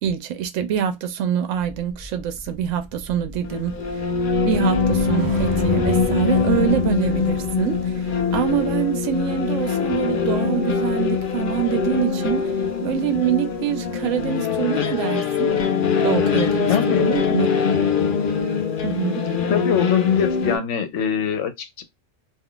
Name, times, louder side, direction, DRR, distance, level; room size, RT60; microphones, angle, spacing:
voice 1, 0.0-3.8 4.4-8.0 8.3-12.5 12.8-15.6 16.0-17.5 18.8-19.2, right 9 dB, 80° right, 0.9 m, -25 dB
sound 1, 1.6-12.0 12.3-12.6, right 1 dB, 20° right, 0.7 m, -34 dB
sound 2, 3.5-20.6, left 5 dB, 50° left, 0.7 m, -22 dB
voice 2, 16.7-17.1 19.5-21.8, left 7 dB, 75° left, 1.0 m, -23 dB
2.6 x 2.3 x 3.7 m
omnidirectional pair, 1.3 m